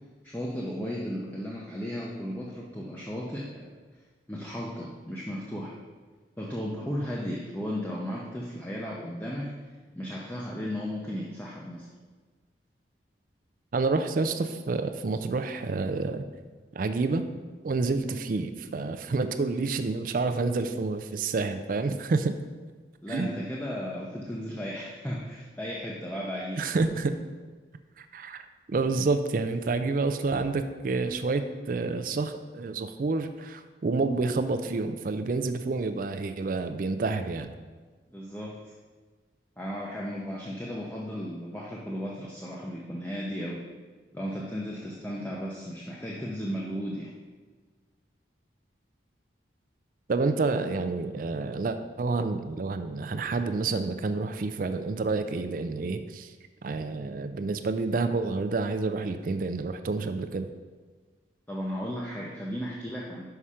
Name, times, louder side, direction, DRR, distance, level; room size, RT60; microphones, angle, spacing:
voice 1, 0.2-3.6 4.3-5.7 6.4-9.5 10.0-11.9 23.0-26.7 38.1-38.7 39.6-43.6 44.1-47.1 61.5-63.2, equal, 10° left, -4 dB, 0.6 m, -35 dB
voice 2, 13.7-16.3 16.7-17.2 17.6-22.3 23.1-23.3 26.6-27.1 28.0-37.5 50.1-56.3 56.6-60.5, right 3 dB, 45° right, 8 dB, 0.4 m, -29 dB
5.8 x 5.5 x 4.8 m, 1.4 s
head